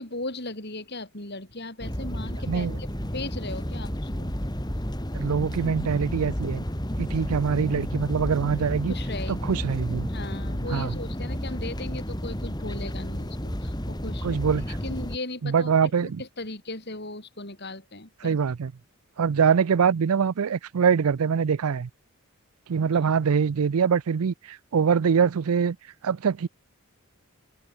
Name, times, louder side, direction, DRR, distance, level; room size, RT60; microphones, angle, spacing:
voice 1, 0.0-4.3 8.9-9.6 10.1-14.4 14.8-15.7 16.0-18.4, left 2 dB, 50° left, 6.3 m, -37 dB
sound 1, 1.8-15.2, equal, 20° left, 3.2 m, -31 dB
voice 2, 2.5-2.8 5.1-6.6 7.0-8.9 9.3-10.1 10.7-11.0 14.2-14.8 15.4-16.2 18.2-18.7 19.2-21.9 22.7-25.8 26.0-26.5, right 6 dB, 80° right, 0.5 m, -24 dB
head